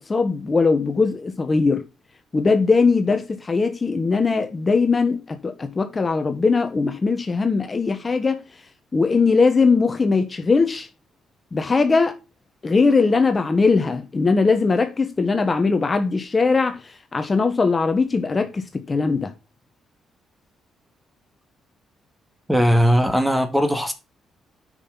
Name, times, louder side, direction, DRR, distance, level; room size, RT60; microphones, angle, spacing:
voice 1, 0.0-1.9 2.3-8.4 8.9-10.9 11.5-12.2 12.6-19.3, left 4 dB, 30° left, 1.2 m, -20 dB
voice 2, 22.5-23.9, equal, 5° right, 1.8 m, -18 dB
9.6 x 5.8 x 4.0 m
cardioid pair, 90°, 0 cm